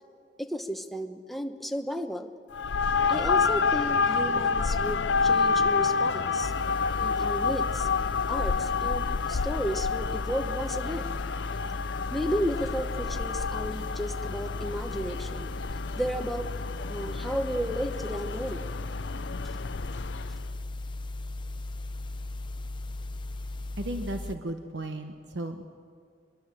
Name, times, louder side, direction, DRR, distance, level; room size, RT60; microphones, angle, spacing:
voice 1, 0.4-2.3 3.1-6.5 7.0-7.9 8.3-11.1 12.1-15.5 16.0-16.5 16.9-18.7, equal, ahead, 5 dB, 1.0 m, -33 dB
sound 1, 2.5-20.4, left 5 dB, 90° left, 0.6 m, -29 dB
sound 2, 6.4-24.4, left 2 dB, 25° left, 0.7 m, -37 dB
voice 2, 23.8-25.6, right 1 dB, 90° right, 6 dB, 1.0 m, -35 dB
23.5 x 21.5 x 7.5 m, 2.1 s
head